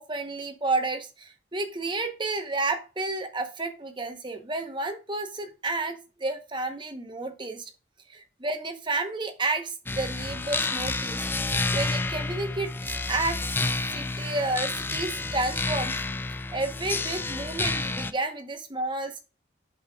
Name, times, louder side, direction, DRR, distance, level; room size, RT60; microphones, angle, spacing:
voice 1, 0.0-7.7 8.1-11.3 11.7-13.4 13.9-16.0 16.5-19.2, right 2 dB, 25° right, 0.9 m, -31 dB
sound 1, 9.9-18.1, left 3 dB, 10° left, 0.3 m, -30 dB
7.9 x 6.7 x 2.3 m
head